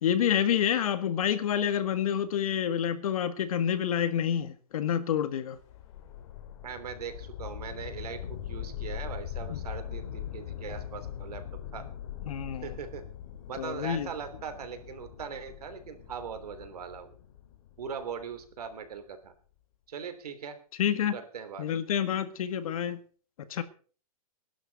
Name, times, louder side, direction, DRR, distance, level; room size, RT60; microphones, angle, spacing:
voice 1, 0.0-5.6 9.5-9.6 12.3-12.7 13.6-14.1 20.8-21.2 21.6-23.0 23.5-23.6, left 9 dB, 65° left, 1.9 m, -28 dB
sound 1, 5.6-18.7, left 10 dB, 50° left, 2.5 m, -41 dB
voice 2, 6.6-11.4 11.7-11.9 12.6-13.1 13.5-17.2 17.8-19.3 19.9-20.6 21.1-21.7, right 7 dB, 90° right, 3.4 m, -40 dB
21.5 x 11.5 x 4.2 m
hypercardioid pair, 165°, 19 cm